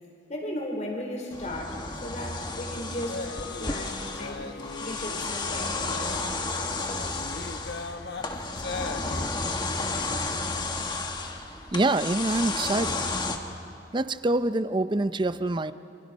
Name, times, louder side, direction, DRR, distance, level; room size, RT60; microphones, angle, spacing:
voice 1, 0.3-3.3 3.6-4.5 4.8-5.8, left 1 dB, 40° left, 1 dB, 4.4 m, -35 dB
sound 1, 1.3-13.4, left 3 dB, 25° left, 1.4 m, -32 dB
sound 2, 3.0-9.3, left 3 dB, 65° left, 1.0 m, -39 dB
voice 2, 11.7-13.1 13.9-15.7, right 2 dB, 25° right, 13 dB, 0.5 m, -25 dB
28.0 x 26.5 x 5.3 m, 2.6 s
head